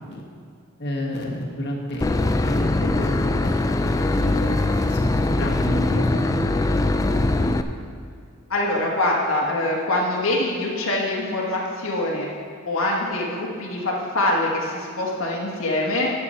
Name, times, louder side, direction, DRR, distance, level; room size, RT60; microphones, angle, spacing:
voice 1, 0.8-2.1 2.5-4.5 4.8-6.5, equal, 55° left, -1 dB, 1.5 m, -29 dB
Boat Water vehicle / Engine, 2.0-7.6, left 2 dB, 15° left, 0.3 m, -22 dB
voice 2, 8.5-12.3 12.7-16.1, left 1 dB, 70° left, -2 dB, 1.4 m, -24 dB
12.0 x 7.0 x 4.3 m, 2.3 s
head